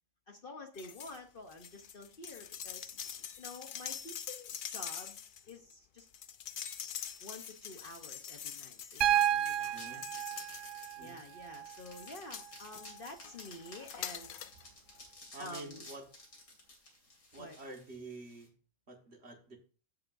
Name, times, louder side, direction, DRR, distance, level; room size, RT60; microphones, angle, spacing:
voice 1, 0.3-3.0 3.4-5.2 5.5-6.1 7.2-10.0 11.0-14.4 15.4-15.8 17.4-17.6, left 2 dB, 45° left, 4 dB, 1.1 m, -49 dB
sound 1, 0.7-1.2 1.5-11.2 11.7-14.6 14.9-15.0, left 8 dB, 65° left, 0.5 m, -45 dB
sound 2, 6.6-18.5, left 2 dB, 80° left, 3.4 m, -55 dB
Piano, 9.0-13.0 14.6-14.7, right 12 dB, 80° right, 0.4 m, -33 dB
voice 2, 9.7-10.1 11.0-11.2 15.3-16.0 17.3-18.5 18.9-19.6, right 2 dB, 50° right, 2 dB, 1.9 m, -48 dB
14.5 x 6.9 x 2.6 m, 0.36 s
omnidirectional pair, 1.5 m